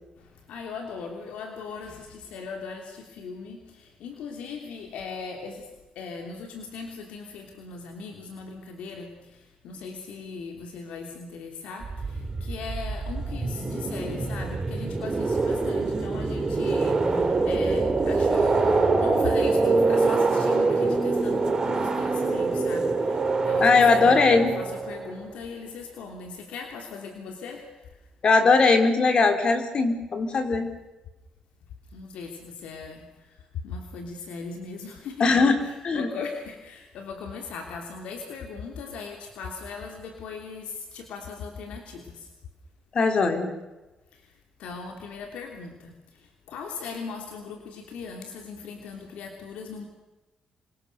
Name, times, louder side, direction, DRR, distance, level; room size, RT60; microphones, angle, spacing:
voice 1, 0.2-5.7 5.9-27.9 31.9-35.3 35.6-42.3 44.1-44.3 44.6-49.9, left 5 dB, 85° left, 3 dB, 3.2 m, -39 dB
sound 1, 11.8-25.2, right 3 dB, 35° right, 6.3 m, -25 dB
voice 2, 23.6-24.6 28.2-30.7 35.2-36.1 42.9-43.6, left 4 dB, 50° left, 7 dB, 4.2 m, -20 dB
28.5 x 23.5 x 6.8 m, 1.1 s
cardioid pair, 80°, 2 cm